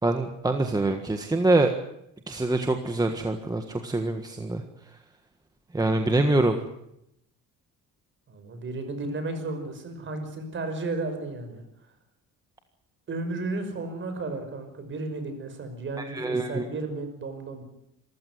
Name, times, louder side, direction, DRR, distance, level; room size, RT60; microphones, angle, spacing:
voice 1, 0.0-1.7 2.3-4.6 5.7-6.6 16.1-16.6, right 2 dB, 10° right, 6 dB, 1.6 m, -24 dB
voice 2, 8.3-11.6 13.1-17.6, right 2 dB, 35° right, 8 dB, 5.9 m, -33 dB
26.5 x 15.5 x 9.5 m, 0.79 s
cardioid pair, 140°, 32 cm